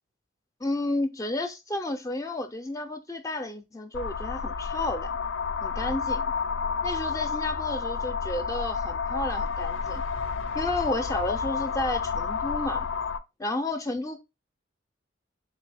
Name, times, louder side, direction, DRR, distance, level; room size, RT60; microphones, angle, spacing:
voice 1, 0.6-5.2 5.6-6.3 6.8-10.0 10.5-12.9 13.4-14.2, left 2 dB, 15° left, 0.4 m, -31 dB
sound 1, 3.9-13.2, left 5 dB, 80° left, 0.4 m, -30 dB
3.7 x 3.4 x 3.3 m
head